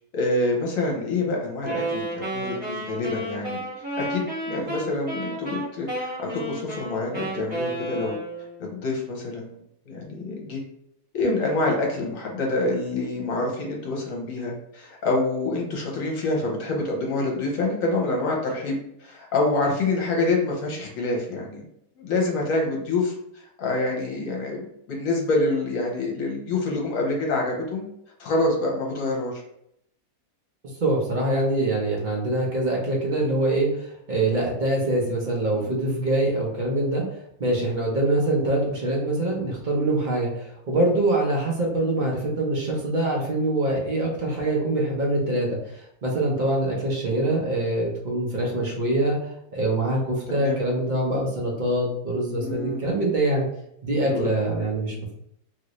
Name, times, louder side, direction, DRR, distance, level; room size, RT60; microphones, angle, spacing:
voice 1, 0.1-3.6 4.0-8.2 8.6-9.5 9.8-10.6 11.1-21.7 22.0-27.8 28.2-29.4 35.5-35.8 50.4-50.6 52.3-52.9 54.0-54.3 54.9-55.0, left 2 dB, 65° left, -1 dB, 1.2 m, -26 dB
Wind instrument woodwind instrument, 1.6-8.6, right 1 dB, 20° right, 1.3 m, -31 dB
voice 2, 30.8-37.0 37.4-49.2 49.5-53.5 53.8-55.1, right 1 dB, 45° right, -2 dB, 0.7 m, -24 dB
3.0 x 2.6 x 3.0 m, 0.74 s
omnidirectional pair, 1.6 m